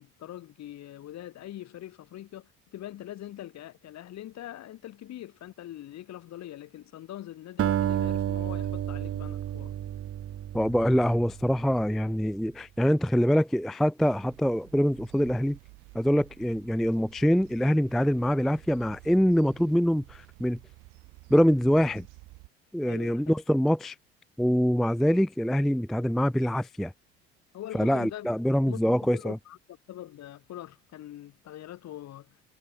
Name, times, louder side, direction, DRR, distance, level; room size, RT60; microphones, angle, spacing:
voice 1, 0.0-9.7 22.9-23.2 27.5-28.3 28.6-29.6 29.9-32.4, left 13 dB, 50° left, 2.6 m, -43 dB
Acoustic guitar, 7.6-12.0, right 11 dB, 40° right, 1.3 m, -31 dB
voice 2, 10.5-15.6 15.9-20.6 21.3-22.1 22.7-24.0 24.4-26.9 27.7-29.4, equal, ahead, 0.3 m, -24 dB
sound 1, 14.0-22.5, right 25 dB, 70° right, 6.4 m, -52 dB
hypercardioid pair, 65°, 34 cm